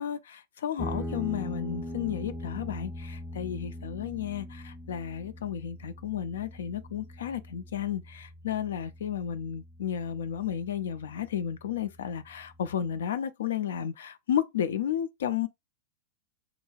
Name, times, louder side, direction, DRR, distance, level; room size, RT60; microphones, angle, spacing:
voice 1, 0.0-15.5, left 9 dB, 60° left, 0.4 m, -33 dB
sound 1, 0.8-9.8, left 1 dB, 5° left, 0.5 m, -40 dB
3.6 x 2.2 x 3.2 m
figure-of-eight pair, 90°, 0 cm